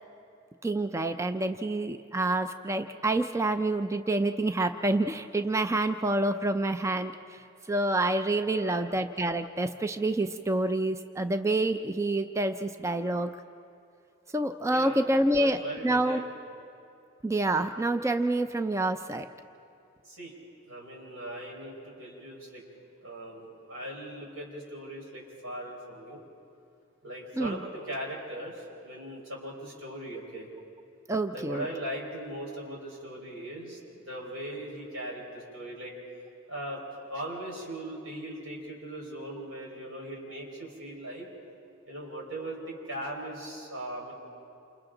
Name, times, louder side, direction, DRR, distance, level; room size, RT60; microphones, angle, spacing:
voice 1, 0.6-13.3 14.3-16.2 17.2-19.3 27.4-27.6 31.1-31.7, right 2 dB, 15° right, 8 dB, 0.4 m, -28 dB
voice 2, 8.5-8.9 14.7-16.3 20.1-20.3 20.7-22.6 23.0-26.2 27.0-30.5 31.3-33.8 34.1-35.9 36.5-36.8 37.1-41.3 41.9-44.1, right 1 dB, 85° right, -2 dB, 5.2 m, -39 dB
28.5 x 28.0 x 3.9 m, 2.6 s
head